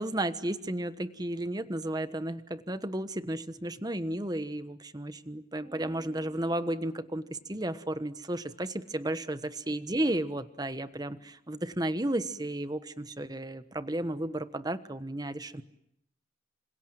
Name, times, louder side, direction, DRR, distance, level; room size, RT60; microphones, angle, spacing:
voice 1, 0.0-15.6, right 1 dB, 20° right, 12 dB, 1.2 m, -33 dB
sound 1, 5.6-8.1, equal, 35° right, 4.7 m, -57 dB
27.5 x 26.0 x 7.8 m, 0.79 s
head